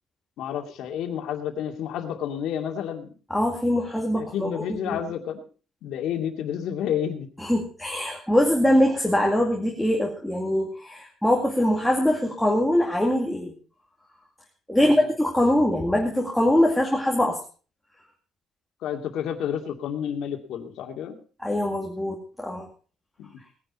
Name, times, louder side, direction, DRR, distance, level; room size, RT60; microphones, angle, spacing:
voice 1, 0.4-3.1 4.2-5.4 5.8-7.3 14.8-15.1 18.8-21.1 23.2-23.4, left 9 dB, 75° left, 4 dB, 2.5 m, -30 dB
voice 2, 3.3-5.0 7.4-13.5 14.7-17.4 21.4-22.7, left 1 dB, ahead, -1 dB, 2.1 m, -23 dB
19.0 x 10.5 x 4.4 m, 0.37 s
cardioid pair, 160°, 0 cm